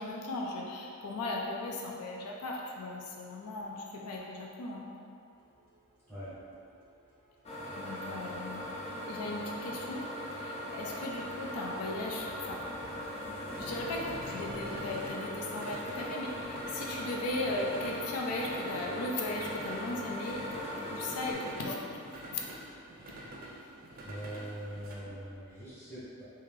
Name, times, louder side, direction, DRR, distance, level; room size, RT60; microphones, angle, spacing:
voice 1, 0.0-4.9 7.8-8.6 9.1-10.0 10.3-12.6 13.6-20.4 20.9-21.8 22.3-22.4 25.0-25.1, left 2 dB, 90° left, -1 dB, 0.4 m, -37 dB
sound 1, 5.4-25.0, right 1 dB, 40° right, 0.4 m, -48 dB
sound 2, 7.4-21.3, equal, 30° left, 0.4 m, -40 dB
voice 2, 8.0-8.6 24.0-26.2, right 1 dB, 10° left, -14 dB, 1.3 m, -43 dB
3.1 x 2.8 x 3.6 m, 2.6 s
head